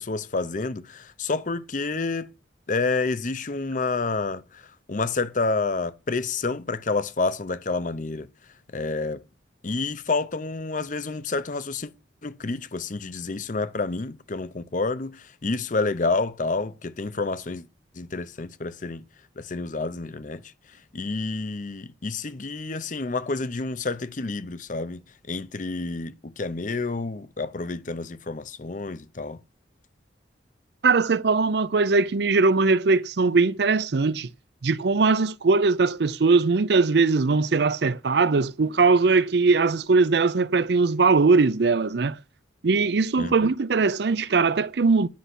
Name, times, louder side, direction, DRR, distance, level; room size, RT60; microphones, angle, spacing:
voice 1, 0.0-2.3 2.7-4.6 4.9-8.3 8.7-9.2 9.6-11.9 12.2-17.6 17.9-19.0 19.4-20.4 20.9-25.0 25.3-29.4 43.2-43.5, left 3 dB, 45° left, 0.7 m, -29 dB
voice 2, 30.8-34.3 34.6-42.2 42.6-45.1, right 4 dB, 65° right, 0.5 m, -20 dB
10.5 x 5.6 x 8.1 m
head